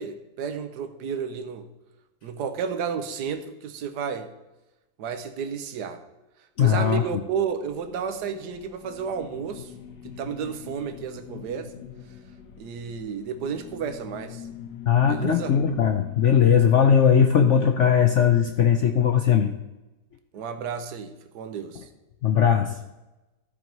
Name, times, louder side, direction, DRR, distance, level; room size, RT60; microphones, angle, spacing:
voice 1, 0.0-1.7 2.2-4.3 5.0-6.0 6.6-9.7 10.0-11.7 12.6-14.4 15.1-15.5 20.3-21.9, right 6 dB, 70° right, 8 dB, 1.4 m, -32 dB
voice 2, 6.6-7.0 14.9-19.5 22.2-22.8, left 8 dB, 70° left, 5 dB, 0.7 m, -19 dB
sound 1, 7.5-16.6, left 8 dB, 90° left, 1.6 m, -43 dB
13.5 x 4.6 x 5.3 m, 1.0 s
omnidirectional pair, 1.9 m